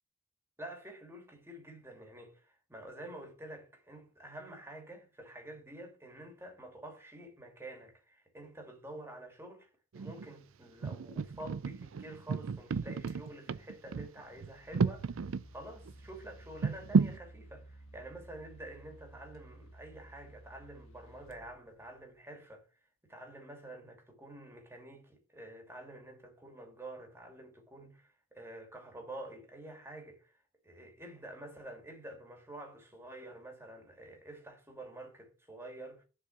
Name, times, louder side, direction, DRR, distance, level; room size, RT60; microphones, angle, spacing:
voice 1, 0.6-9.7 9.9-22.7 23.1-36.0, right 1 dB, 10° right, 2.5 m, -49 dB
sound 1, 9.9-10.3 10.8-15.4 15.9-16.0 16.6-17.2, right 5 dB, 70° right, 0.4 m, -32 dB
sound 2, 13.1-13.3 14.2-22.2, right 1 dB, 80° left, 1.4 m, -55 dB
7.5 x 4.7 x 6.7 m
head